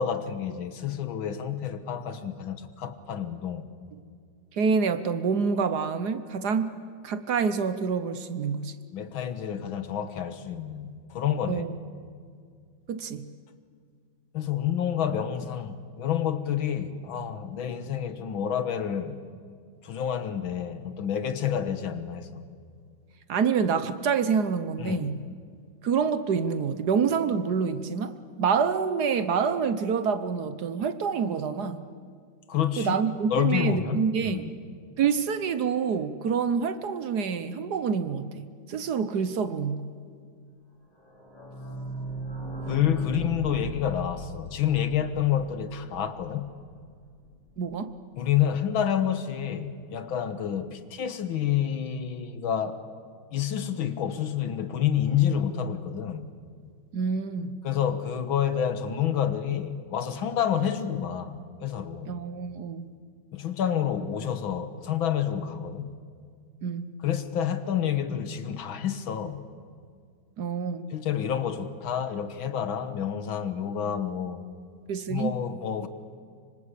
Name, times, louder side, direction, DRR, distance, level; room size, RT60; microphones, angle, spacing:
voice 1, 0.0-3.7 8.9-11.6 14.3-19.2 19.8-22.5 24.8-25.1 32.5-33.0 33.3-34.5 42.7-46.5 48.2-52.8 53.3-56.3 57.6-62.2 63.3-65.9 67.0-69.4 70.9-74.4 75.1-75.9, left 9 dB, 80° left, 11 dB, 2.1 m, -29 dB
voice 2, 4.5-8.8 11.5-11.8 12.9-13.3 23.3-25.2 25.8-31.9 32.8-34.5 35.0-39.9 47.6-47.9 56.9-57.6 62.1-63.0 66.6-66.9 70.4-70.9 74.9-75.3, right 6 dB, 60° right, 12 dB, 1.4 m, -27 dB
sound 1, 41.0-46.5 46.8-46.9 47.1-47.2 47.5-47.6, right 1 dB, 10° left, 4.4 m, -38 dB
25.5 x 25.0 x 8.3 m, 2.1 s
omnidirectional pair, 2.2 m